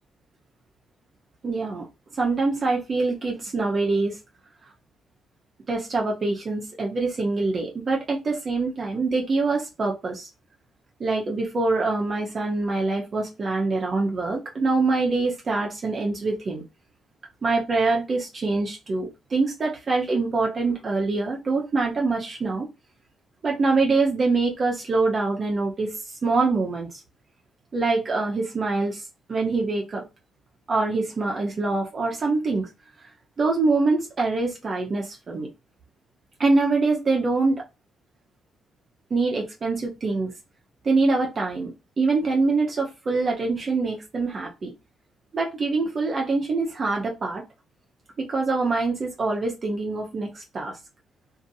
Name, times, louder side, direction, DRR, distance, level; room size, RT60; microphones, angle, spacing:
voice 1, 1.4-1.9 2.2-4.2 5.7-10.3 11.0-16.6 17.4-22.7 23.4-25.9 26.2-26.9 27.7-29.0 29.3-30.0 30.7-32.7 33.4-35.5 36.4-37.6 39.1-40.3 40.8-44.7 45.3-47.4 48.2-50.8, right 3 dB, 40° right, 0.9 m, -24 dB
2.8 x 2.7 x 2.7 m
cardioid pair, 90°, 0 cm